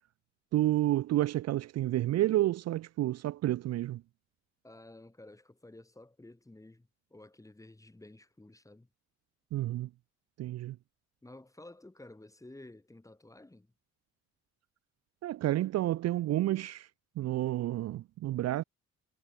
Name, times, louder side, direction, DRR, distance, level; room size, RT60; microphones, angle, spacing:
voice 1, 0.5-4.0 9.5-9.9 10.4-10.8 15.2-16.9 17.2-18.6, right 15 dB, 60° right, 0.5 m, -30 dB
voice 2, 4.6-8.9 11.2-13.7, left 2 dB, 10° left, 2.5 m, -53 dB
cardioid pair, 90°, 30 cm